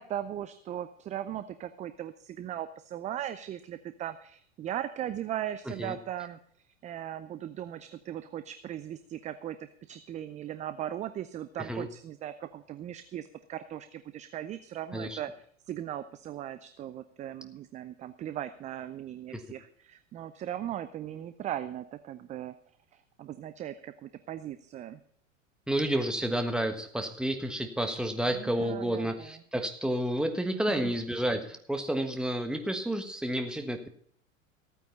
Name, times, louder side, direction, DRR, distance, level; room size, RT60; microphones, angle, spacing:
voice 1, 0.0-6.4 6.8-9.6 9.9-15.3 15.7-22.5 22.9-25.0 28.3-29.4 30.7-30.9, right 11 dB, 20° right, 12 dB, 0.5 m, -38 dB
voice 2, 5.7-6.0 11.6-11.9 14.9-15.2 19.3-19.4 25.7-33.9, right 1 dB, ahead, 6 dB, 1.4 m, -30 dB
15.0 x 9.1 x 5.4 m, 0.62 s
figure-of-eight pair, 90°, 39 cm